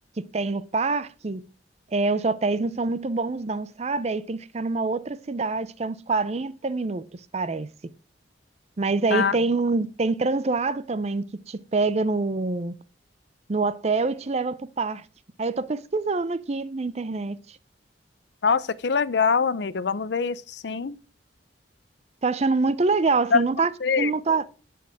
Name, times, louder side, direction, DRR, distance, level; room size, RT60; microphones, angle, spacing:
voice 1, 0.2-1.4 1.9-7.7 8.8-12.8 13.5-15.1 15.4-17.6 22.2-23.7 24.0-24.4, right 3 dB, 35° right, 0.5 m, -25 dB
voice 2, 18.4-21.0 23.3-23.4 23.8-24.1, left 5 dB, 65° left, 0.5 m, -23 dB
10.5 x 4.7 x 6.1 m
head